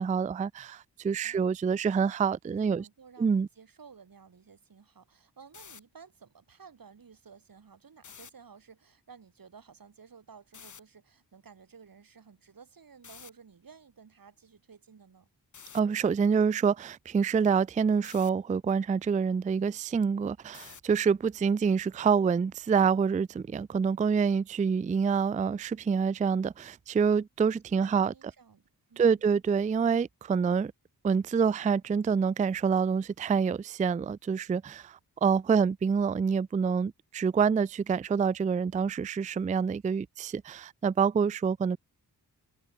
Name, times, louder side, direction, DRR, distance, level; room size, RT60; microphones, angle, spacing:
voice 1, 0.0-2.9 3.2-3.5 15.7-28.1 29.0-30.7 31.0-41.8, right 6 dB, 20° right, 0.3 m, -27 dB
voice 2, 1.2-1.6 2.5-15.3 27.4-29.2, right 6 dB, 60° right, 2.1 m, -54 dB
sound 1, 5.4-5.8 8.0-8.3 10.5-10.8 13.0-13.3 15.5-15.8 18.0-18.3 20.5-20.9, left 6 dB, 50° left, 1.0 m, -49 dB
cardioid pair, 55°, 39 cm